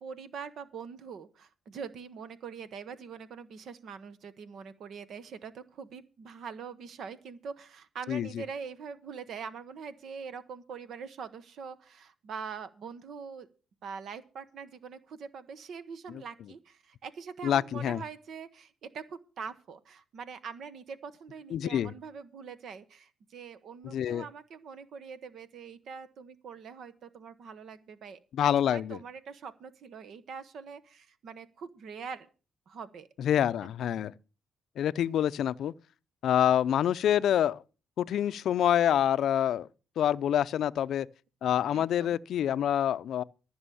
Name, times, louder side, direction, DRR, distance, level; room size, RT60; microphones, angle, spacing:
voice 1, 0.0-13.5 13.8-28.2 28.7-32.3 32.7-33.1 41.7-42.2, right 6 dB, 65° right, 1.1 m, -43 dB
voice 2, 8.1-8.4 16.1-16.2 17.4-18.0 21.5-21.9 23.8-24.3 28.3-29.0 33.2-34.1 34.8-35.7 36.2-37.6 38.0-39.7 40.0-41.1 41.4-43.2, left 10 dB, 70° left, 0.5 m, -27 dB
14.5 x 6.2 x 7.0 m
cardioid pair, 90°, 0 cm